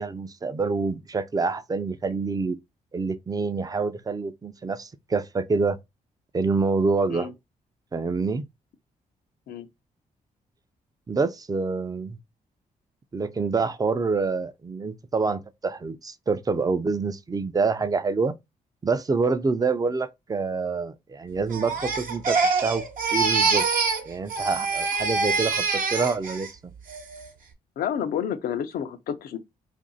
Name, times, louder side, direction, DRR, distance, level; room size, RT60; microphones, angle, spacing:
voice 1, 0.0-2.6 2.9-5.8 6.3-7.3 7.9-8.4 11.1-12.2 13.1-18.4 18.8-22.8 23.1-23.7 24.1-26.7, right 4 dB, 25° right, 0.5 m, -26 dB
Crying sobbing, 21.5-24.0 24.3-26.5 26.9-27.3, right 4 dB, 65° right, 0.9 m, -25 dB
voice 2, 27.8-29.4, left 8 dB, 75° left, 0.6 m, -29 dB
2.7 x 2.6 x 3.9 m
cardioid pair, 65°, 15 cm